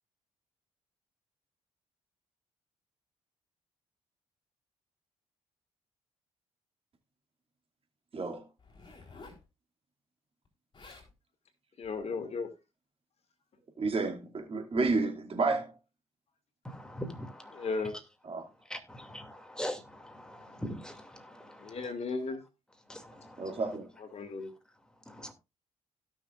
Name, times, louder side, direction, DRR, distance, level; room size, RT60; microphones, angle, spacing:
voice 1, 8.1-8.4 13.8-15.7 18.3-18.5 23.4-23.9, right 3 dB, 45° right, 2.6 m, -30 dB
Zipper (clothing), 8.6-9.5 10.4-10.5 10.7-11.1 11.8-12.1, left 3 dB, 35° left, 3.9 m, -52 dB
voice 2, 11.8-12.5 17.5-18.0 21.6-22.4 24.0-24.5, left 4 dB, 55° left, 2.2 m, -35 dB
voice 3, 16.6-17.7 18.7-21.8 22.9-23.6 25.1-25.3, equal, 5° left, 2.5 m, -42 dB
17.0 x 6.4 x 2.5 m
hypercardioid pair, 55°, 13 cm